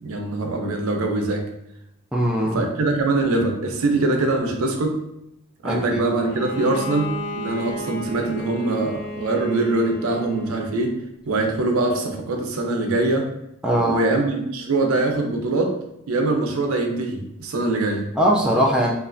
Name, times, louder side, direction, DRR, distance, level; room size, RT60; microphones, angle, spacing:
voice 1, 0.0-1.4 2.5-5.0 5.6-10.9 11.3-13.3 13.8-15.7 16.1-18.1, right 2 dB, 90° right, 3 dB, 0.5 m, -23 dB
voice 2, 2.1-2.6 5.6-6.1 13.6-14.1 18.1-18.9, equal, 5° right, -2 dB, 0.3 m, -20 dB
Bowed string instrument, 6.2-10.9, left 1 dB, 50° left, 0.6 m, -34 dB
3.1 x 2.4 x 2.5 m, 0.82 s
head